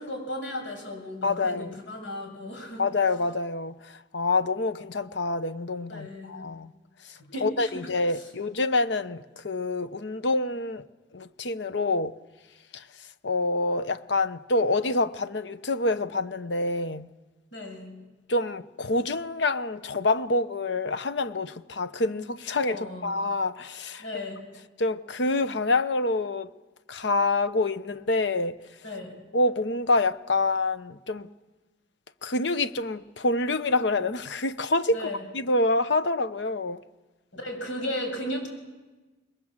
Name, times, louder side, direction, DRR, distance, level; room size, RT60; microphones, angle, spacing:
voice 1, 0.0-2.8 5.9-6.4 7.2-7.7 8.1-8.3 17.5-17.9 22.7-23.2 24.0-24.4 28.8-29.1 34.9-35.2 37.3-38.5, left 1 dB, 85° left, 6.9 m, -35 dB
voice 2, 1.2-1.8 2.8-6.7 7.4-10.8 11.1-12.2 12.7-12.8 13.2-17.1 18.3-24.0 24.8-26.5 26.9-28.6 29.3-31.3 32.2-35.1 35.3-36.8, left 2 dB, 70° left, 0.9 m, -27 dB
25.0 x 21.5 x 7.5 m
head